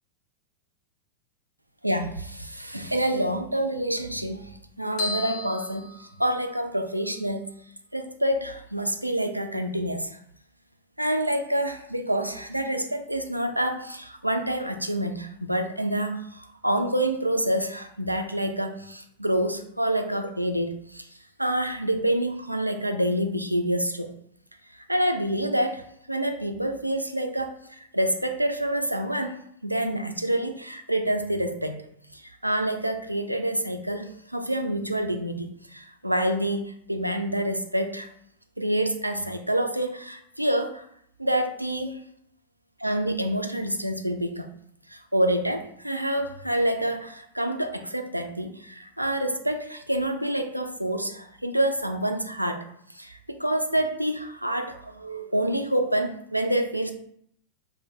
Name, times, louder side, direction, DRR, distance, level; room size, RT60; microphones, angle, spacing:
voice 1, 1.8-4.5 4.8-7.5 7.9-10.2 11.0-21.1 21.4-24.1 24.9-25.8 26.1-29.3 29.6-31.8 32.1-38.1 38.6-40.8 41.2-42.0 42.8-44.5 44.9-52.6 52.9-56.9, right 1 dB, 90° right, 5 dB, 0.3 m, -27 dB
sound 1, 5.0-6.7, left 2 dB, 45° left, 0.7 m, -35 dB
3.0 x 2.2 x 3.5 m, 0.69 s
figure-of-eight pair, 90°, 0 cm